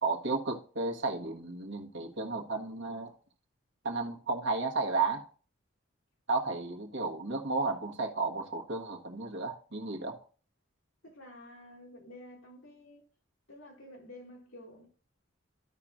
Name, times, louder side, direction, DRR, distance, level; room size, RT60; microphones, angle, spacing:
voice 1, 0.0-3.1 3.8-5.3 6.3-10.2, right 3 dB, 65° right, 1.5 m, -33 dB
voice 2, 11.0-13.0 13.5-14.9, left 1 dB, 80° left, 2.9 m, -50 dB
14.0 x 5.8 x 2.5 m
head